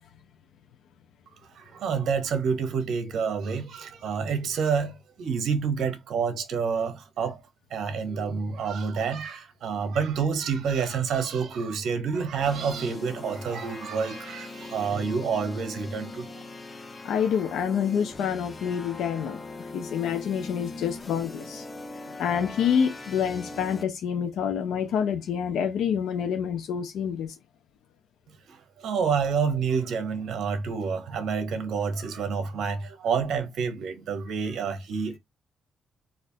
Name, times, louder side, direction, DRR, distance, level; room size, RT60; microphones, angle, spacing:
voice 1, 1.4-7.4 7.7-16.4 28.5-35.2, right 6 dB, 75° right, 1.0 m, -28 dB
sound 1, 12.4-23.8, left 3 dB, 25° left, 0.8 m, -40 dB
voice 2, 17.0-21.7 22.2-27.3, left 8 dB, 85° left, 0.6 m, -27 dB
4.0 x 2.5 x 2.7 m
cardioid pair, 105°, 0 cm